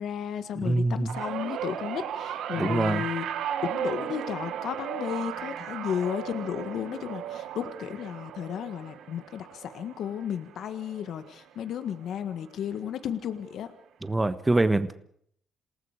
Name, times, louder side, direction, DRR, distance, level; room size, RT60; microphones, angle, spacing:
voice 1, 0.0-3.2 3.6-13.7, left 9 dB, 75° left, 9 dB, 1.7 m, -33 dB
voice 2, 0.6-1.2 2.6-3.0 14.0-15.0, right 2 dB, 15° right, 11 dB, 1.3 m, -25 dB
sound 1, 1.1-11.5 11.9-12.3 13.4-13.5, right 10 dB, 80° right, 1.2 m, -36 dB
27.5 x 19.0 x 5.0 m, 0.65 s
cardioid pair, 90°, 0 cm